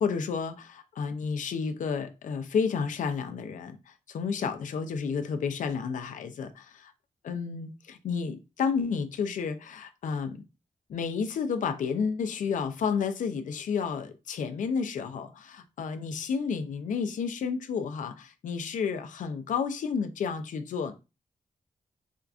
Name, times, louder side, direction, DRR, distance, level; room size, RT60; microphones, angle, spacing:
voice 1, 0.0-6.9 7.2-10.4 10.9-20.9, left 6 dB, 70° left, 0.4 m, -31 dB
4.4 x 2.4 x 2.3 m
cardioid pair, 95°, 14 cm